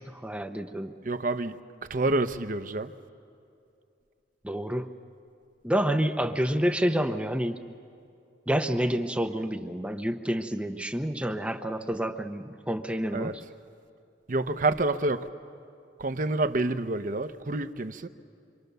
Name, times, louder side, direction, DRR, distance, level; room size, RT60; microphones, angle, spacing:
voice 1, 0.1-0.9 4.4-4.9 5.6-7.6 8.5-13.4, equal, 5° right, 0.8 m, -28 dB
voice 2, 1.0-1.6 1.9-2.9 13.1-13.3 14.3-15.3 16.0-18.1, right 2 dB, 45° right, 0.8 m, -28 dB
25.5 x 25.0 x 6.8 m
head